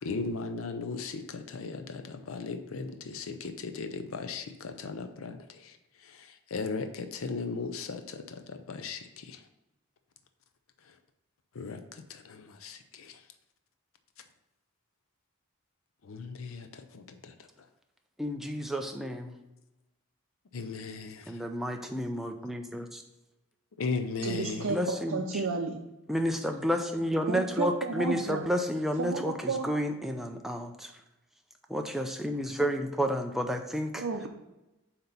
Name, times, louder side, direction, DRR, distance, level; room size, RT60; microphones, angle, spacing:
voice 1, 0.0-5.4 6.5-9.4 11.6-11.8 12.1-13.1 16.1-17.3 20.5-21.2 23.8-24.7, left 4 dB, 75° left, 7 dB, 0.5 m, -36 dB
voice 2, 18.2-19.4 21.3-23.0 24.7-25.4 26.1-30.9 31.7-34.0, equal, ahead, 4 dB, 0.5 m, -31 dB
voice 3, 24.2-25.8 27.3-28.5 29.0-29.7 34.0-34.3, right 4 dB, 80° right, 1 dB, 0.6 m, -32 dB
7.6 x 2.9 x 5.4 m, 0.96 s
head